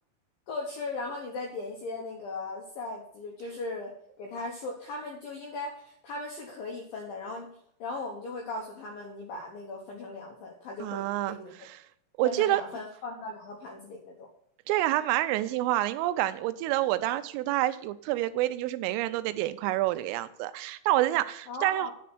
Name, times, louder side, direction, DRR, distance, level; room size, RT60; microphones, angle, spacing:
voice 1, 0.5-3.9 4.2-11.5 12.2-14.3 21.5-21.9, left 3 dB, 80° left, 2.0 m, -38 dB
voice 2, 10.8-11.8 12.2-12.6 14.7-21.9, right 15 dB, 90° right, 3.2 m, -28 dB
10.0 x 4.3 x 7.6 m
omnidirectional pair, 5.7 m